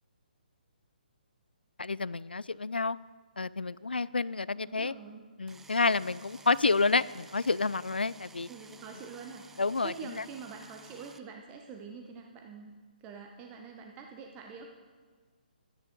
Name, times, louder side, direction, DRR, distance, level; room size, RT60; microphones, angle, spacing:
voice 1, 1.8-3.0 3.4-4.9 5.4-8.5 9.6-9.9, left 3 dB, 90° left, 19 dB, 0.4 m, -29 dB
voice 2, 4.6-5.3 8.5-12.7 13.0-14.7, right 5 dB, 20° right, 2 dB, 0.8 m, -45 dB
sound 1, 5.5-11.2, right 4 dB, 5° right, 0.4 m, -54 dB
12.5 x 9.8 x 5.2 m, 1.5 s
figure-of-eight pair, 140°, 5 cm